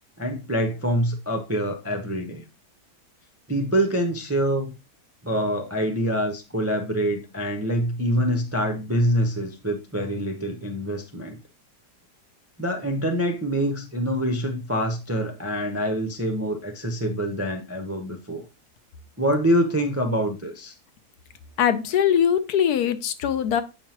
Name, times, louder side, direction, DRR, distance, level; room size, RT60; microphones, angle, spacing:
voice 1, 0.2-2.4 3.5-4.7 5.2-11.4 12.6-18.5 19.2-20.7, equal, 20° right, 4 dB, 0.4 m, -25 dB
voice 2, 21.6-23.6, left 9 dB, 75° left, 11 dB, 1.2 m, -21 dB
7.8 x 5.4 x 2.9 m, 0.29 s
omnidirectional pair, 1.7 m